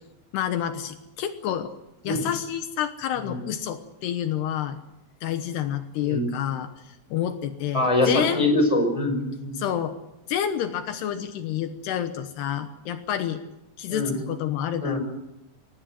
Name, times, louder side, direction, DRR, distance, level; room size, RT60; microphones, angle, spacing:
voice 1, 0.3-1.7 2.0-4.8 5.2-8.5 9.5-10.0 10.3-13.4 13.8-15.0, left 10 dB, 80° left, 9 dB, 3.1 m, -29 dB
voice 2, 7.7-9.5 13.9-14.2 14.8-15.0, left 2 dB, 10° left, 5 dB, 5.0 m, -23 dB
24.5 x 19.0 x 7.7 m, 0.91 s
omnidirectional pair, 4.8 m